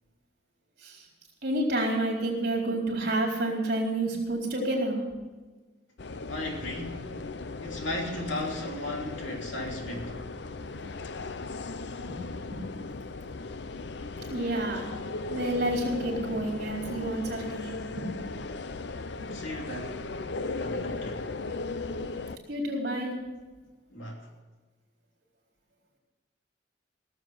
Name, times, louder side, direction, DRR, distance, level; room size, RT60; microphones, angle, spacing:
voice 1, 1.4-5.0 12.1-12.2 12.5-12.6 14.3-14.8 15.3-18.1 19.2-19.3 22.5-23.1, right 1 dB, 55° right, 4.0 m, -29 dB
sound 1, 6.0-22.4, left 3 dB, 65° left, 0.6 m, -37 dB
voice 2, 6.3-7.2 7.6-10.2 19.3-20.1 20.6-21.3 23.9-24.3, left 1 dB, 80° left, 3.0 m, -36 dB
17.0 x 7.8 x 7.9 m
head